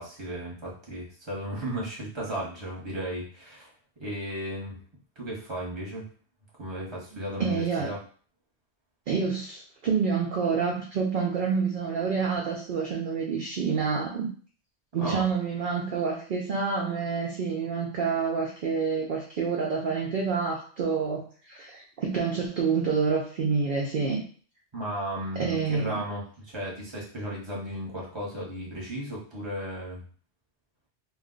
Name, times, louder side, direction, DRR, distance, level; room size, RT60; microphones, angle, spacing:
voice 1, 0.0-3.7 4.0-4.8 5.2-6.1 6.6-8.0 15.0-15.2 24.7-30.0, right 1 dB, 25° right, -4 dB, 1.0 m, -35 dB
voice 2, 7.4-7.9 9.1-14.3 14.9-24.2 25.4-26.0, right 5 dB, 60° right, -1 dB, 0.7 m, -28 dB
2.4 x 2.2 x 3.7 m, 0.43 s
omnidirectional pair, 1.1 m